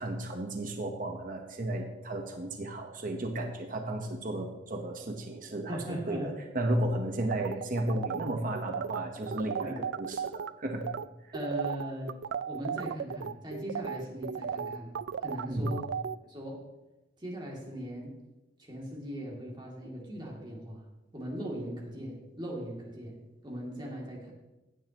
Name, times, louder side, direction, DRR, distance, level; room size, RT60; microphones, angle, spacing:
voice 1, 0.0-10.8 11.2-11.3 15.5-15.7, right 1 dB, 45° right, 3 dB, 1.1 m, -34 dB
voice 2, 5.7-6.3 9.6-9.8 11.3-12.1 12.5-14.9 15.2-15.8 16.3-16.6 17.2-18.1 18.6-20.8 21.1-23.2 23.4-24.3, equal, 25° right, -2 dB, 2.6 m, -39 dB
sound 1, 7.3-10.5 10.8-11.0 11.3-16.1, right 7 dB, 75° right, 0.4 m, -35 dB
15.0 x 10.5 x 3.0 m, 1.0 s
head